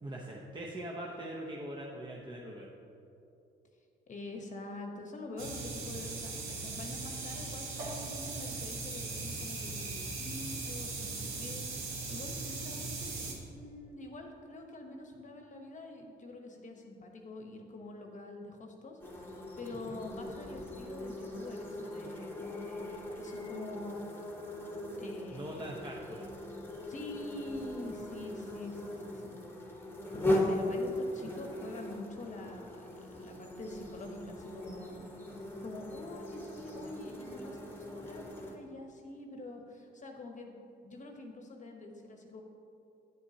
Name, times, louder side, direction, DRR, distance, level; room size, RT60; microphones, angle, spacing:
voice 1, 0.0-2.7 19.9-20.0 25.3-26.3, right 1 dB, 25° right, -3 dB, 0.8 m, -42 dB
voice 2, 4.1-24.0 25.0-25.7 26.9-29.4 30.1-35.1 35.6-40.5 40.8-42.4, left 2 dB, 40° left, 2 dB, 1.0 m, -46 dB
sound 1, 5.4-13.3, right 3 dB, 85° right, 1.3 m, -39 dB
sound 2, 19.0-38.6, left 1 dB, 10° left, 1.1 m, -39 dB
9.0 x 8.1 x 2.8 m, 2.8 s
cardioid pair, 90°, 20 cm